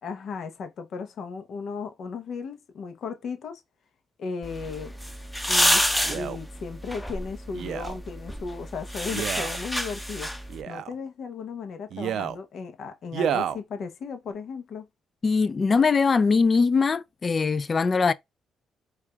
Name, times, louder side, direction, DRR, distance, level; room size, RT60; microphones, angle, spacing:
voice 1, 0.0-3.6 4.2-4.9 5.5-5.8 6.1-10.3 10.7-14.9, left 5 dB, 60° left, 0.8 m, -35 dB
sound 1, 4.4-10.6, equal, 5° left, 0.7 m, -28 dB
Male speech man speaking, 6.0-6.4 7.5-8.0 9.1-9.6 10.5-11.0 11.9-12.4 13.1-13.6 14.3-14.4, right 9 dB, 70° right, 0.4 m, -30 dB
voice 2, 15.2-18.1, left 4 dB, 35° left, 0.3 m, -21 dB
4.7 x 2.4 x 2.3 m
cardioid pair, 90°, 0 cm